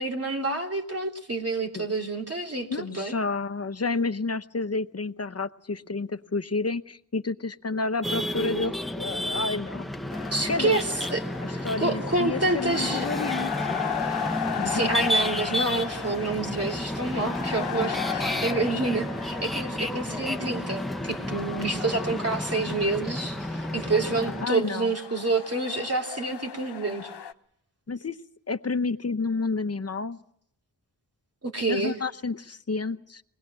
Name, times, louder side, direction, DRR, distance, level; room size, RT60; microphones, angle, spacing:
voice 1, 0.0-3.1 10.3-11.2 11.5-13.1 14.6-27.1 31.4-32.0, right 3 dB, 35° right, 1 dB, 3.3 m, -28 dB
voice 2, 2.7-9.9 10.5-10.8 11.4-14.2 14.6-14.8 24.4-24.9 27.9-28.2 28.5-30.2 31.7-33.2, left 3 dB, 40° left, 11 dB, 0.9 m, -30 dB
sound 1, 8.0-24.5, left 1 dB, ahead, 1.0 m, -31 dB
sound 2, 10.1-27.3, left 7 dB, 85° left, 0.8 m, -36 dB
23.5 x 20.0 x 7.6 m, 0.70 s
wide cardioid pair, 65°, 40 cm